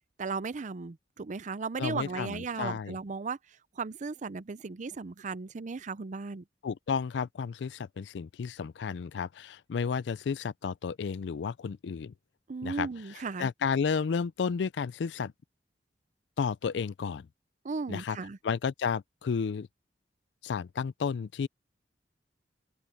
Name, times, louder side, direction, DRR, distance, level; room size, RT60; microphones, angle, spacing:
voice 1, 0.2-3.4 3.8-6.4 12.5-13.5 17.6-18.4, right 4 dB, 45° right, 0.5 m, -36 dB
voice 2, 1.8-3.0 6.6-12.1 12.6-12.9 13.4-15.3 16.4-17.3 17.9-18.2 18.4-19.7 20.4-21.5, left 6 dB, 75° left, 0.4 m, -32 dB
head